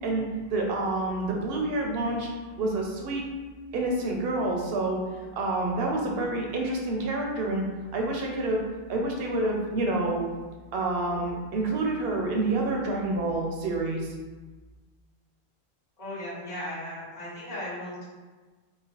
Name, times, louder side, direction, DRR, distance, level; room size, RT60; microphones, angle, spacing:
voice 1, 0.0-2.3 2.6-3.2 3.7-5.0 5.3-7.6 7.9-8.6 8.9-10.2 10.7-14.1, right 2 dB, 70° right, 0 dB, 0.8 m, -28 dB
voice 2, 16.0-18.0, left 1 dB, 40° left, -10 dB, 1.2 m, -36 dB
2.9 x 2.1 x 2.7 m, 1.3 s
omnidirectional pair, 1.1 m